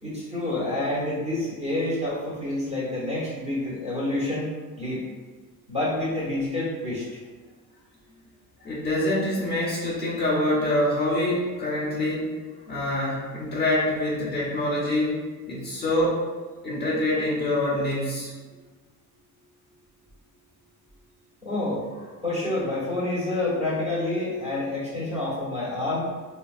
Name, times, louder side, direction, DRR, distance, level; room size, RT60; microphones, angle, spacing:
voice 1, 0.0-4.5 4.8-5.0 5.7-7.2 21.4-21.8 22.2-26.1, left 2 dB, 20° right, -8 dB, 1.2 m, -28 dB
voice 2, 8.6-12.3 12.7-15.1 15.5-16.2 16.6-18.3, left 1 dB, 30° left, -6 dB, 1.1 m, -25 dB
3.2 x 2.5 x 2.5 m, 1.4 s
cardioid pair, 120°, 35 cm